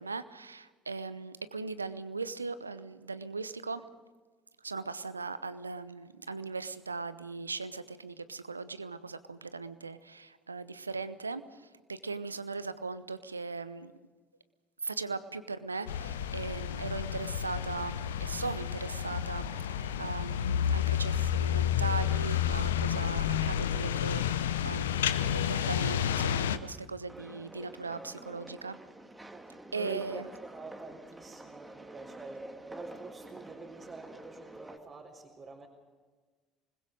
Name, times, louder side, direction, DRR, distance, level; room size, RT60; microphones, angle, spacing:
voice 1, 0.0-3.8 4.6-11.4 11.9-13.9 14.8-28.8 29.7-30.2, right 4 dB, 85° right, 14 dB, 0.8 m, -39 dB
sound 1, 15.9-26.6, left 9 dB, 75° left, 0.8 m, -30 dB
sound 2, 27.1-34.8, right 2 dB, 15° right, 2.3 m, -48 dB
voice 2, 29.3-35.7, right 4 dB, 35° right, -3 dB, 3.9 m, -47 dB
26.0 x 21.0 x 5.2 m, 1.4 s
figure-of-eight pair, 60°, 0 cm